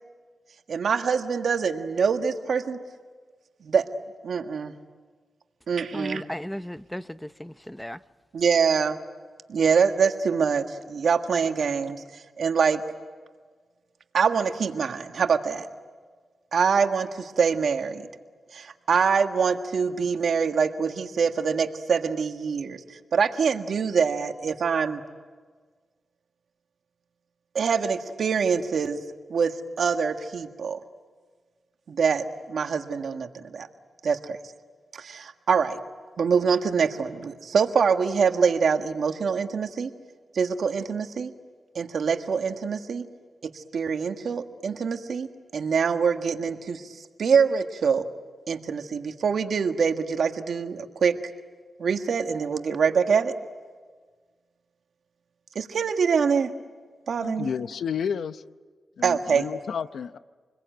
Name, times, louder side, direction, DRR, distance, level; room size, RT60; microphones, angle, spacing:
voice 1, 0.7-2.8 3.6-3.8 4.2-4.7 5.7-6.2 8.3-9.0 9.5-12.0 12.4-12.8 14.1-15.7 16.5-18.1 18.5-25.0 27.5-29.0 29.3-30.8 31.9-33.7 34.0-34.4 34.9-35.8 36.2-39.9 40.3-41.3 41.7-43.1 43.5-46.9 47.2-48.0 48.5-51.2 51.8-53.3 55.5-56.5 57.1-57.5 59.0-59.5, right 6 dB, 75° right, 1.6 m, -24 dB
voice 2, 5.9-8.0, equal, 5° left, 0.8 m, -35 dB
voice 3, 57.2-58.4 59.0-60.2, left 7 dB, 85° left, 0.7 m, -31 dB
28.0 x 21.5 x 9.2 m
cardioid pair, 60°, 0 cm